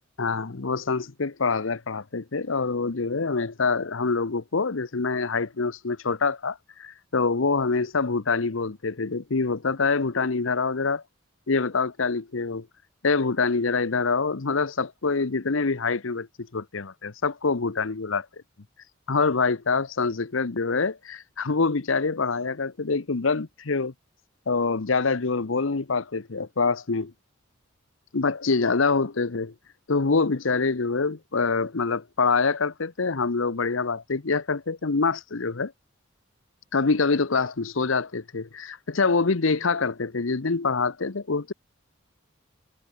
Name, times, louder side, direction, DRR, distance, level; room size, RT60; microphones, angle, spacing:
voice 1, 0.2-11.0 11.5-12.7 13.0-18.3 19.1-23.9 24.5-27.1 28.1-29.5 29.9-35.7 36.7-41.5, left 4 dB, 75° left, 0.9 m, -25 dB
head